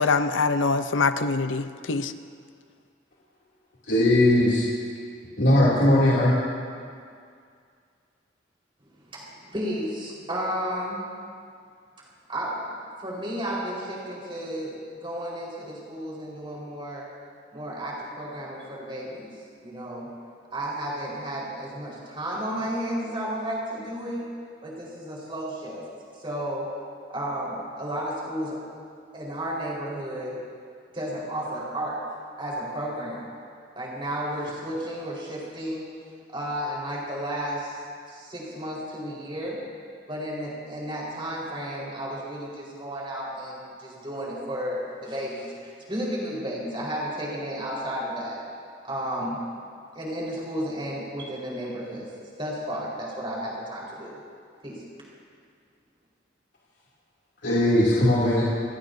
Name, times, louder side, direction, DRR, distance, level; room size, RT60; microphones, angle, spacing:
voice 1, 0.0-2.1, left 4 dB, 85° left, 10 dB, 0.7 m, -24 dB
voice 2, 3.9-4.6 5.4-6.4 57.4-58.4, left 1 dB, 70° left, -8 dB, 2.8 m, -19 dB
voice 3, 9.1-11.0 12.3-12.6 13.0-17.1 17.5-19.3 19.6-20.1 20.5-24.2 24.6-25.8 26.2-26.7 27.1-28.6 29.1-30.4 30.9-32.0 32.4-33.3 33.8-35.9 36.3-37.8 38.1-39.6 40.1-48.4 48.8-49.4 49.9-52.1 52.4-54.2 54.6-54.8, equal, 25° right, -5 dB, 4.5 m, -32 dB
28.5 x 16.0 x 2.7 m, 2.2 s
head